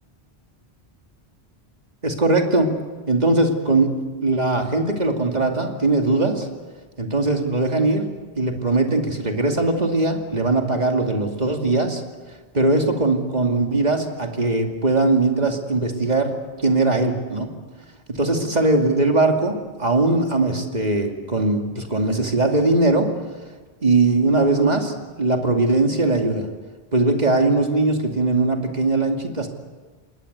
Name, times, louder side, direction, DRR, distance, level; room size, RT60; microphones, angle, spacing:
voice 1, 2.0-2.7 3.1-6.5 7.0-8.1 8.4-12.0 12.5-16.3 16.6-17.5 18.1-23.1 23.8-26.5 26.9-29.5, right 2 dB, 40° right, 3 dB, 2.6 m, -20 dB
28.0 x 21.0 x 8.1 m, 1.3 s
omnidirectional pair, 1.1 m